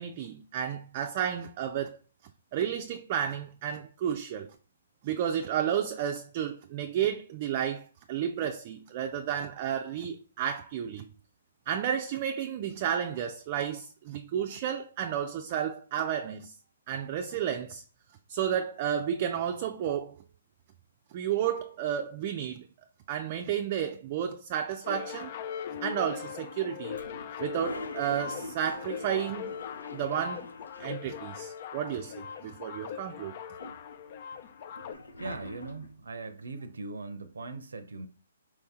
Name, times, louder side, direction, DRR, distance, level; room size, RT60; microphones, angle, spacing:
voice 1, 0.0-2.0 2.5-4.5 5.0-11.1 11.7-16.5 16.9-17.8 18.3-20.1 21.1-22.6 23.1-25.3 25.8-27.0 27.4-29.5 29.9-30.5 30.8-33.3, right 9 dB, 40° right, 0.4 m, -32 dB
sound 1, 24.8-34.9, left 8 dB, 45° left, 0.4 m, -40 dB
Toilet flush, 26.9-31.3 31.6-31.7 31.9-32.7 33.2-36.0, left 2 dB, 85° left, 0.8 m, -45 dB
voice 2, 35.2-38.1, right 3 dB, 85° right, 0.6 m, -40 dB
4.5 x 2.8 x 3.6 m
hypercardioid pair, 140°, 0 cm